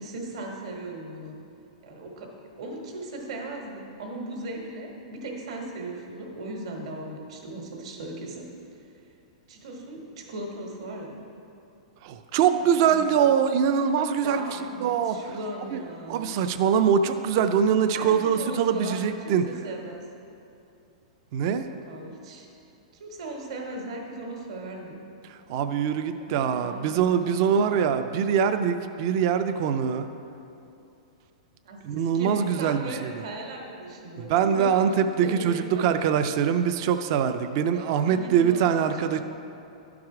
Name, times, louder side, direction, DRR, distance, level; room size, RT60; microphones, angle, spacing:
voice 1, 0.0-1.3 1.8-2.3 2.6-8.8 9.5-11.2 12.8-13.0 14.2-16.4 17.9-20.1 21.7-22.5 22.9-25.0 26.2-27.8 31.6-31.8 32.1-36.0 37.7-39.2, right 2 dB, 55° right, 0 dB, 1.4 m, -38 dB
voice 2, 12.0-15.2 15.7-15.8 16.1-19.4 21.3-21.7 25.2-30.1 31.8-33.2 34.2-39.2, right 7 dB, 35° right, 9 dB, 0.3 m, -23 dB
11.5 x 4.8 x 4.8 m, 2.7 s
supercardioid pair, 170°, 4 cm